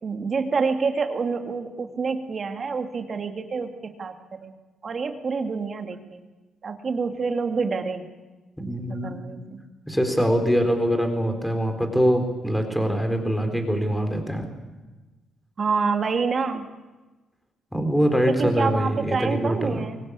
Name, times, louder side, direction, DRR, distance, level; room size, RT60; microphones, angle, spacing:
voice 1, 0.0-4.1 4.4-4.5 4.8-6.2 6.6-8.1 8.9-9.6 15.6-16.7 18.3-20.1, right 5 dB, 40° right, 6 dB, 2.4 m, -27 dB
voice 2, 8.6-9.2 9.9-14.5 17.7-19.8, equal, 5° left, 6 dB, 3.9 m, -23 dB
23.5 x 18.0 x 8.4 m, 1.2 s
cardioid pair, 90°, 0 cm